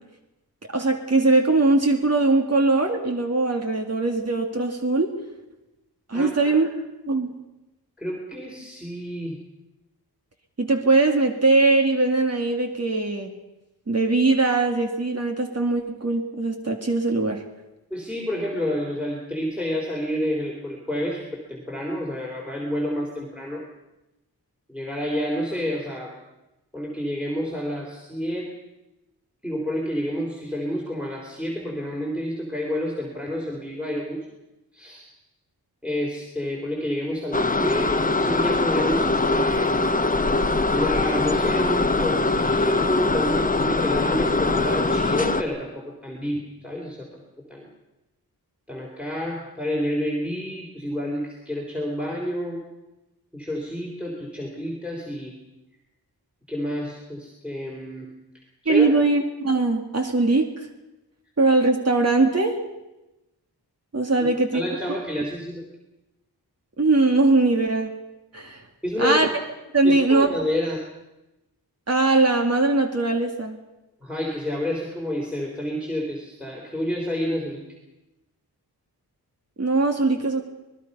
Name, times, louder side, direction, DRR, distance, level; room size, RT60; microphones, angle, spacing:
voice 1, 0.7-5.1 6.1-6.7 7.1-7.3 10.6-13.3 13.9-17.4 58.7-60.5 61.4-62.6 63.9-64.6 66.8-67.9 68.3-68.6 69.0-69.3 69.7-70.3 71.9-73.6 79.6-80.4, right 3 dB, 40° right, 3 dB, 2.2 m, -21 dB
voice 2, 6.1-6.6 8.0-9.4 17.9-23.7 24.7-26.2 26.7-28.5 29.4-34.3 34.7-35.1 35.8-39.7 40.7-47.2 47.5-47.7 48.7-52.6 53.3-55.4 56.5-58.1 58.6-59.0 64.5-65.6 68.8-69.2 69.8-70.8 74.0-77.6, equal, 5° right, -1 dB, 3.5 m, -29 dB
sound 1, 37.3-45.4, left 3 dB, 20° left, 1.0 m, -22 dB
26.0 x 20.0 x 5.5 m, 0.99 s
wide cardioid pair, 115°, 39 cm